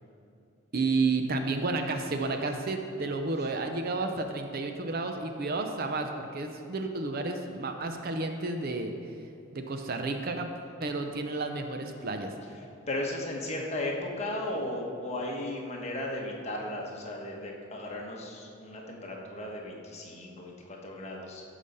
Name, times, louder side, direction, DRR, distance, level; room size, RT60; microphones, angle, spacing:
voice 1, 0.7-8.9 9.5-10.5 10.8-12.3, right 3 dB, 45° right, 5 dB, 0.6 m, -31 dB
voice 2, 12.9-21.4, left 1 dB, 30° left, -1 dB, 1.3 m, -35 dB
14.0 x 5.1 x 5.5 m, 2.7 s
head